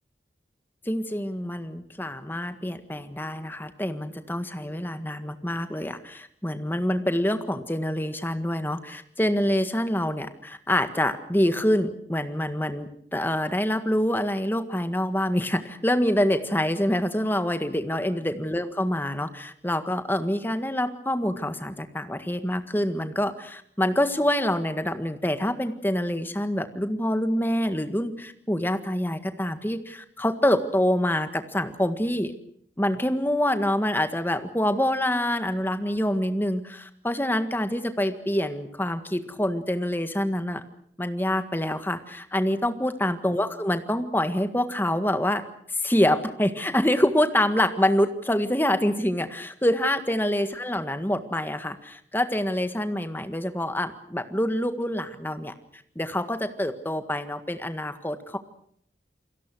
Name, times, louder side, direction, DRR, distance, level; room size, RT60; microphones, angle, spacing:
voice 1, 0.9-32.3 32.8-40.6 41.0-45.4 45.7-55.5 56.0-58.4, left 1 dB, 10° left, 9 dB, 1.7 m, -26 dB
29.0 x 22.5 x 6.3 m, 0.64 s
head